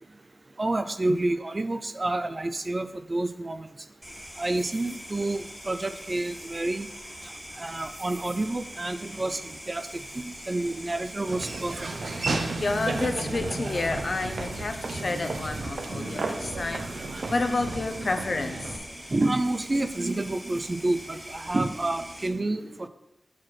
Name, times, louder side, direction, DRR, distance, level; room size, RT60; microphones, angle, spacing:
voice 1, 0.6-3.7 4.4-6.9 7.6-9.4 9.7-11.9 16.0-16.1 19.1-22.9, right 2 dB, 40° right, 10 dB, 0.4 m, -29 dB
sound 1, 4.0-22.3, equal, 5° right, 1.4 m, -43 dB
Laughter / Walk footsteps, 11.3-18.8, right 3 dB, 80° right, 0.6 m, -33 dB
voice 2, 12.6-16.8 17.3-18.8, left 3 dB, 60° left, 7 dB, 0.7 m, -30 dB
6.0 x 4.9 x 5.8 m, 0.89 s
wide cardioid pair, 75°, 0 cm